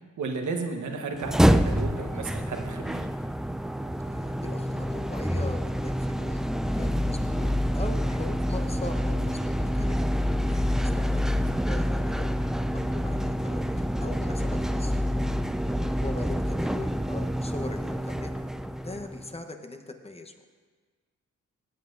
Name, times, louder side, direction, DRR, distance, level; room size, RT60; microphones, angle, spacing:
voice 1, 0.2-3.1, right 4 dB, 70° right, 3 dB, 1.3 m, -33 dB
sound 1, 1.1-19.3, equal, ahead, 0.3 m, -27 dB
voice 2, 4.0-10.0 10.4-15.0 15.8-18.3 18.8-20.4, left 2 dB, 20° left, 5 dB, 1.1 m, -41 dB
16.0 x 8.6 x 2.7 m, 1.5 s
supercardioid pair, 55°, 31 cm